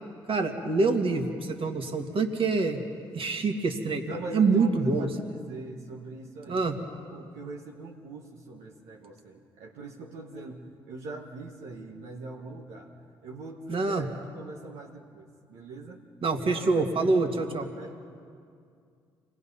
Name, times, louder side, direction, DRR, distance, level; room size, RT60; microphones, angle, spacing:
voice 1, 0.3-2.8 3.1-4.0 4.3-5.1 6.5-6.8 13.7-14.1 16.2-17.7, right 3 dB, 50° right, 4 dB, 2.4 m, -26 dB
voice 2, 4.0-6.7 7.1-12.9 13.2-16.0 16.4-17.9, right 2 dB, 75° right, -1 dB, 1.6 m, -42 dB
28.0 x 19.5 x 5.7 m, 2.3 s
hypercardioid pair, 45°, 11 cm